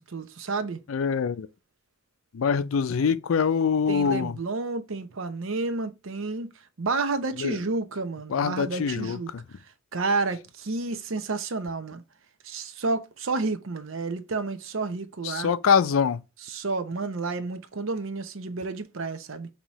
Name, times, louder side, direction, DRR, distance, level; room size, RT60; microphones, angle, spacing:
voice 1, 0.1-0.8 3.9-6.5 6.8-9.3 9.9-12.0 12.4-15.5 16.4-19.5, right 3 dB, 80° right, 0.7 m, -30 dB
voice 2, 0.9-1.5 2.3-4.3 7.4-7.6 8.3-9.2 15.2-16.2, left 6 dB, 85° left, 0.4 m, -24 dB
5.5 x 2.9 x 3.0 m
head